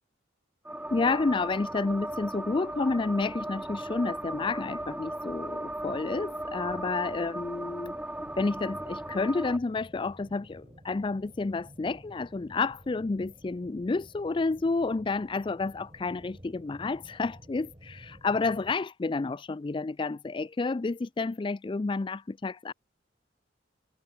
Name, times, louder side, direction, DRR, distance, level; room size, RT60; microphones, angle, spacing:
sound 1, 0.6-9.6, right 1 dB, 5° right, 1.4 m, -37 dB
voice 1, 0.9-7.9 8.4-22.7, left 3 dB, 25° left, 0.4 m, -30 dB
sound 2, 8.2-18.8, equal, 25° right, 7.8 m, -52 dB
head